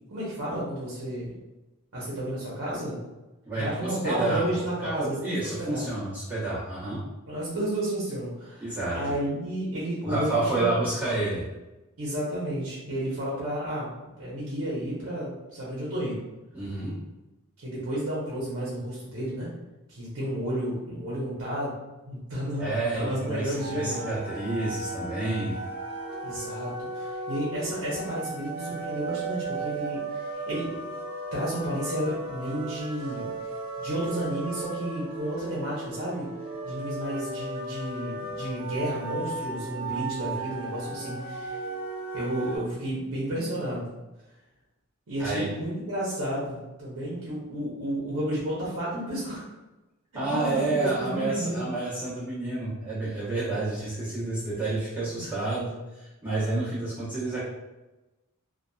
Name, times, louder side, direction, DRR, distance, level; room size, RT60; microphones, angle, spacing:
voice 1, 0.1-1.3 1.9-3.0 3.6-5.9 7.3-10.8 12.0-16.2 17.6-19.5 19.9-21.7 22.0-24.1 26.2-30.7 31.3-33.3 33.8-36.3 36.6-41.6 42.1-43.9 45.1-49.5 50.2-51.7 55.2-55.3, right 1 dB, 65° right, -6 dB, 0.7 m, -32 dB
voice 2, 3.5-7.0 8.6-9.0 10.0-11.4 16.5-17.0 22.6-25.6 45.2-45.5 50.1-57.4, right 2 dB, 10° right, -13 dB, 0.9 m, -29 dB
sound 1, 23.6-42.6, right 3 dB, 25° right, 0.6 m, -35 dB
2.7 x 2.2 x 2.2 m, 1.0 s
head